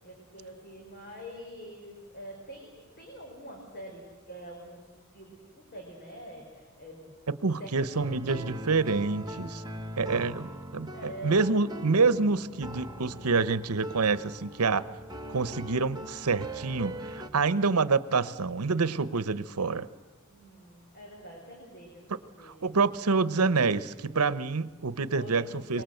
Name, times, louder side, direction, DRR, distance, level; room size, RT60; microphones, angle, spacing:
voice 1, 0.0-4.8 5.1-7.2 7.6-7.8 8.1-8.5 10.9-11.7 20.3-22.5 25.0-25.8, equal, 45° left, 0 dB, 4.6 m, -45 dB
voice 2, 7.4-9.6 10.0-14.8 15.3-19.9 22.4-25.8, right 4 dB, 90° right, 16 dB, 0.9 m, -27 dB
sound 1, 8.0-17.3, right 1 dB, 20° right, 1.1 m, -41 dB
26.0 x 22.5 x 7.9 m, 1.4 s
head